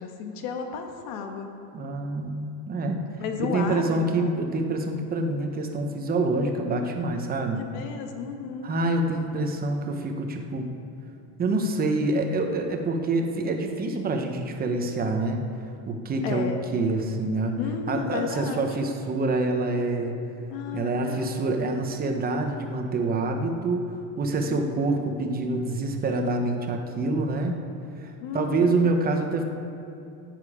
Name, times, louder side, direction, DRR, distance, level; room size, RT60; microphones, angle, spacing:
voice 1, 0.0-1.5 3.2-4.4 7.6-8.8 16.2-16.6 17.6-18.7 20.5-21.4 24.5-25.1 28.2-29.0, left 5 dB, 65° left, 4 dB, 1.6 m, -33 dB
voice 2, 1.7-3.0 3.4-7.6 8.6-10.7 11.4-15.4 15.9-17.6 17.9-20.2 20.7-27.6 28.0-29.4, right 2 dB, 20° right, 4 dB, 0.9 m, -26 dB
13.5 x 9.1 x 4.9 m, 2.7 s
cardioid pair, 155°, 44 cm